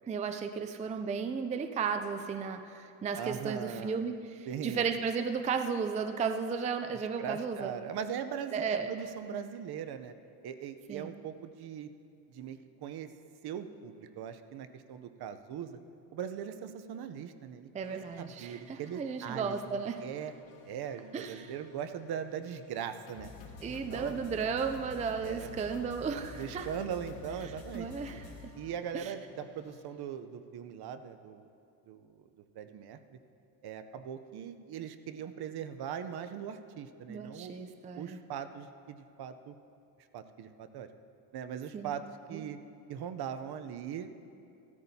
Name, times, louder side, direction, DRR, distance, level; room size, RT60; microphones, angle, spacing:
voice 1, 0.1-7.7 8.5-8.9 10.9-11.1 17.7-20.0 21.1-21.5 23.6-26.7 27.7-28.5 28.9-29.1 37.1-38.2 41.7-41.9 42.3-42.4, right 6 dB, 20° right, 8 dB, 0.3 m, -34 dB
voice 2, 3.2-4.0 4.5-4.9 7.2-10.1 10.4-11.9 12.3-13.1 13.4-15.8 16.1-19.6 20.0-20.3 20.7-23.3 23.7-24.1 25.2-25.5 26.3-27.9 28.5-31.5 31.9-32.3 32.5-33.2 33.6-37.5 38.0-39.5 40.1-40.9 41.3-42.6 42.9-44.2, right 8 dB, 60° right, 9 dB, 0.7 m, -40 dB
sound 1, 17.8-29.8, left 5 dB, 75° left, 1.7 m, -51 dB
16.0 x 13.0 x 2.8 m, 2.5 s
cardioid pair, 135°, 44 cm